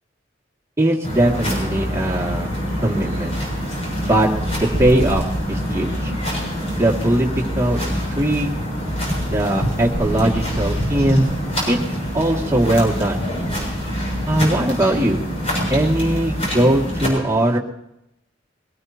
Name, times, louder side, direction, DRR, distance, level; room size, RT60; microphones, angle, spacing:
voice 1, 0.8-2.5 2.8-3.4 4.0-4.3 4.6-6.1 6.7-7.3 7.6-8.6 9.3-11.2 11.7-11.8 12.1-13.2 14.3-15.2 15.7-17.6, right 1 dB, 15° right, -3 dB, 2.4 m, -20 dB
sound 1, 1.0-17.1, equal, 35° left, 7.1 m, -25 dB
22.5 x 18.5 x 3.0 m, 0.83 s
head